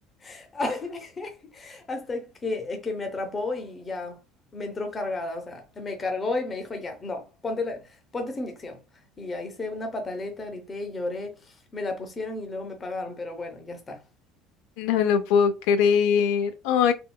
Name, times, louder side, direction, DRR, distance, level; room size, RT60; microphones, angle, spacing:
voice 1, 0.2-4.2 4.5-8.8 9.2-14.0, left 2 dB, 15° left, 0.5 m, -33 dB
voice 2, 14.8-16.9, left 7 dB, 70° left, 0.4 m, -21 dB
3.5 x 2.2 x 2.2 m
cardioid pair, 180°, 0 cm